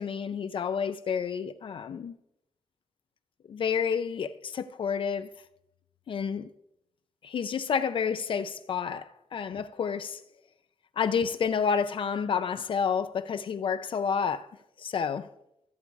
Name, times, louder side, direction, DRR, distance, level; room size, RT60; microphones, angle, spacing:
voice 1, 0.0-2.2 3.5-5.3 6.1-6.5 7.2-10.2 11.0-14.5 14.8-15.3, left 6 dB, 55° left, 0.5 m, -29 dB
14.0 x 8.1 x 4.8 m
wide cardioid pair, 170°, 10 cm